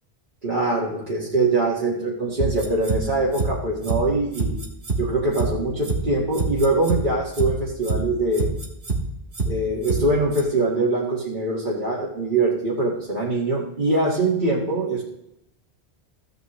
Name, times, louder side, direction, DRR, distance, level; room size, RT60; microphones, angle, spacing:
voice 1, 0.4-4.6 5.0-8.5 9.4-15.0, right 2 dB, 50° right, -6 dB, 1.8 m, -23 dB
sound 1, 2.4-3.0 3.3-3.5 3.8-4.0 4.3-5.0 5.3-5.5 5.8-6.0 6.3-7.0 7.3-7.5 7.8-8.0 8.3-9.0 9.3-9.5 9.8-10.0 10.3-10.4, right 3 dB, 85° right, 1.8 m, -25 dB
15.0 x 8.1 x 3.0 m, 0.84 s
omnidirectional pair, 1.1 m